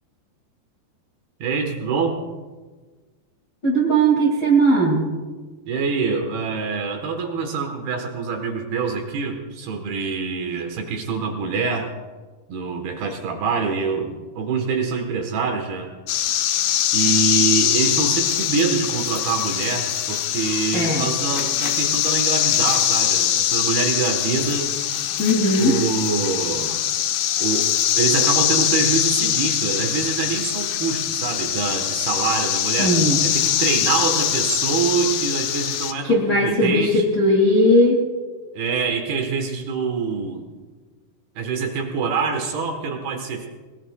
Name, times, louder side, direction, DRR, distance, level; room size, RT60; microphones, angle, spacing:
voice 1, 1.4-2.2 5.7-11.9 12.5-15.9 16.9-24.7 25.6-26.8 27.4-33.0 33.2-37.0 38.5-40.5 41.4-43.5, right 5 dB, 70° right, 4 dB, 2.9 m, -25 dB
voice 2, 3.6-5.1 20.7-21.0 25.2-25.7 32.8-33.2 36.0-38.0, right 1 dB, 40° left, -3 dB, 1.6 m, -18 dB
sound 1, 16.1-35.9, left 11 dB, 80° left, 2.2 m, -22 dB
21.5 x 20.0 x 2.3 m, 1.4 s
omnidirectional pair, 5.2 m